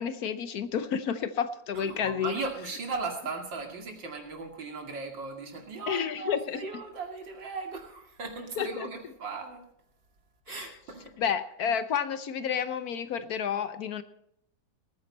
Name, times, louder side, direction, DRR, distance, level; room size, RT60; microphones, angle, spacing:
voice 1, 0.0-2.4 5.9-6.6 8.6-8.9 10.5-10.7 11.2-14.0, left 7 dB, 65° left, 12 dB, 1.1 m, -30 dB
voice 2, 1.7-9.6 10.5-11.1, right 4 dB, 85° right, 3 dB, 3.1 m, -37 dB
19.5 x 9.6 x 4.2 m, 0.74 s
omnidirectional pair, 1.9 m